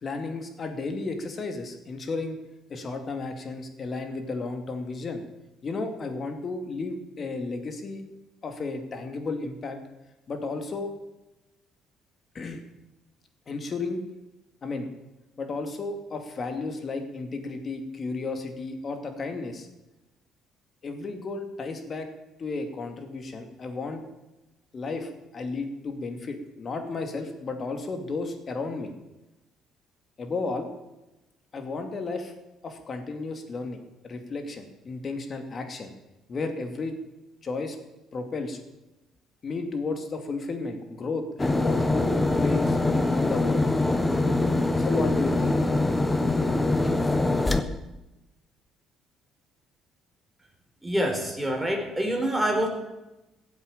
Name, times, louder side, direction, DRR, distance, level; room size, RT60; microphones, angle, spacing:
voice 1, 0.0-2.4 2.7-5.2 5.6-8.0 8.4-9.8 10.3-10.9 12.3-12.6 13.5-14.0 14.6-14.9 15.4-19.7 20.8-22.1 22.4-24.0 24.7-28.9 30.2-30.7 31.5-32.3 32.6-33.8 34.0-35.9 36.3-37.0 37.4-37.8 38.1-38.6 39.4-42.8 43.1-43.7 44.8-45.6, left 3 dB, 40° left, 6 dB, 2.6 m, -33 dB
sound 1, 41.4-47.6, left 2 dB, 15° left, 1.3 m, -23 dB
voice 2, 50.8-52.7, right 1 dB, 5° right, 1 dB, 4.3 m, -26 dB
16.0 x 8.2 x 8.9 m, 1.0 s
cardioid pair, 90°, 0 cm